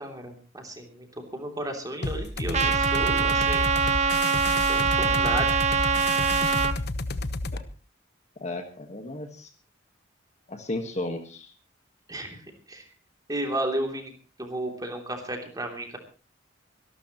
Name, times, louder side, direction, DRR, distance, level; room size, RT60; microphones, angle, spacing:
voice 1, 0.0-4.2 4.7-5.5 12.1-12.4 12.7-12.9 13.3-14.1 14.4-16.0, right 1 dB, 20° right, 3 dB, 3.0 m, -33 dB
sound 1, 2.0-7.6, left 2 dB, 55° left, 1.0 m, -31 dB
Trumpet, 2.5-6.7, right 5 dB, 35° right, 1.0 m, -23 dB
voice 2, 8.4-9.5 10.5-11.5, left 2 dB, 35° left, 5 dB, 1.5 m, -34 dB
25.5 x 12.5 x 3.0 m, 0.35 s
head